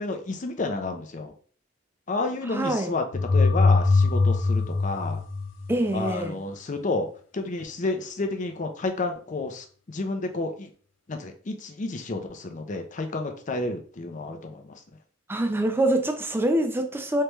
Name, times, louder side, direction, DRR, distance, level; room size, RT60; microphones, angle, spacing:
voice 1, 0.0-1.3 2.1-3.0 3.3-5.2 5.9-7.1 7.3-10.7 11.1-14.8, left 3 dB, 40° left, 0.5 m, -30 dB
voice 2, 2.5-2.9 5.7-6.4 15.3-17.2, right 1 dB, 10° right, 0.4 m, -25 dB
sound 1, 3.1-6.0, left 3 dB, 90° left, 0.5 m, -22 dB
3.3 x 3.0 x 3.1 m
head